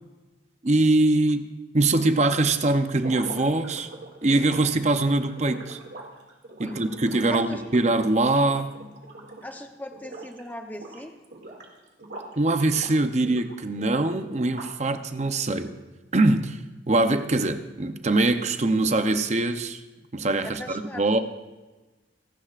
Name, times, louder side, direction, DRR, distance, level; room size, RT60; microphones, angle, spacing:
voice 1, 0.6-1.5 1.7-3.9 4.2-5.8 6.6-8.7 12.4-15.7 16.1-16.6 16.9-19.8 20.1-21.2, right 2 dB, 35° right, 8 dB, 0.7 m, -23 dB
sound 1, 2.9-9.6 9.9-10.4 10.7-12.4 12.7-14.9, right 2 dB, 65° right, 2.3 m, -43 dB
voice 2, 7.2-7.6 9.4-11.1 20.4-21.0, left 1 dB, 10° left, 4 dB, 0.9 m, -39 dB
28.0 x 11.5 x 2.5 m, 1.2 s
head